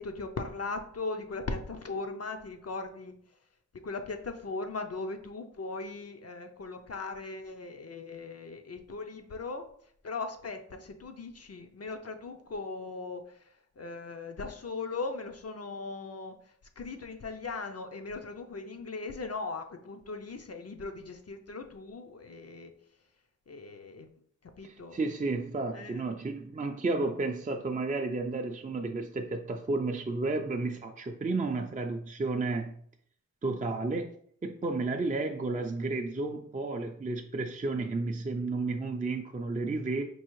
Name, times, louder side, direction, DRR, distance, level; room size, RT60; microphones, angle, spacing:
voice 1, 0.0-3.1 3.8-9.6 10.0-13.2 13.8-16.4 16.8-22.7 23.5-24.1 24.6-25.0 25.7-26.0, left 3 dB, 55° left, 6 dB, 0.5 m, -38 dB
voice 2, 24.6-32.7 33.4-34.1 34.4-40.0, right 3 dB, 25° right, 3 dB, 0.4 m, -32 dB
4.6 x 2.4 x 3.0 m, 0.63 s
wide cardioid pair, 55°, 31 cm